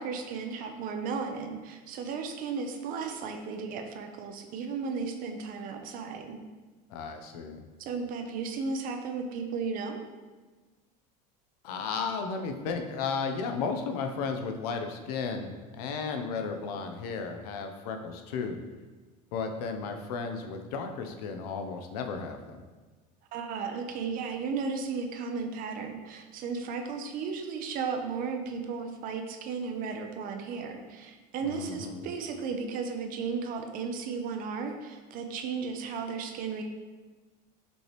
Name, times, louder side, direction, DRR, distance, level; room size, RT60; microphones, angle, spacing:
voice 1, 0.0-6.4 7.9-10.0 23.3-36.6, right 5 dB, 45° right, 5 dB, 0.5 m, -35 dB
voice 2, 6.9-7.6 11.6-18.6 19.3-22.6 31.4-32.1, left 5 dB, 90° left, 5 dB, 0.6 m, -34 dB
5.2 x 3.0 x 3.2 m, 1.3 s
supercardioid pair, 130°, 20 cm